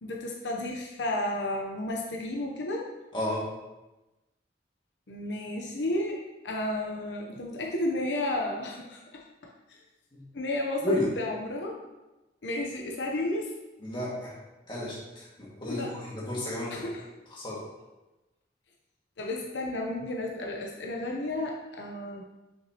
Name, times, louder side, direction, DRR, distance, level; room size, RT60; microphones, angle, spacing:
voice 1, 0.0-2.9 5.1-9.5 10.3-11.8 12.4-13.5 15.7-15.9 16.7-17.0 19.2-22.2, left 1 dB, 90° left, 0 dB, 0.8 m, -32 dB
voice 2, 13.8-14.3 14.7-16.8 17.3-17.6, left 1 dB, 30° left, -6 dB, 1.9 m, -32 dB
6.0 x 5.7 x 2.9 m, 1.1 s
head